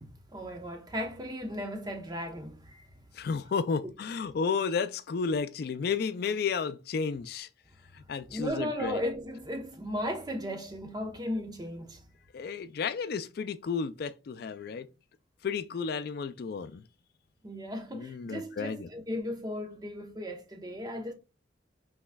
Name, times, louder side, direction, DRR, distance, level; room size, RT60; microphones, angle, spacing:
voice 1, 0.0-2.9 8.3-12.0 17.4-21.1, equal, 20° right, 0.8 m, -36 dB
voice 2, 3.1-7.5 7.9-9.0 12.3-14.9 15.4-16.8 17.9-18.9, left 5 dB, 55° left, 0.3 m, -32 dB
5.7 x 3.1 x 2.2 m
head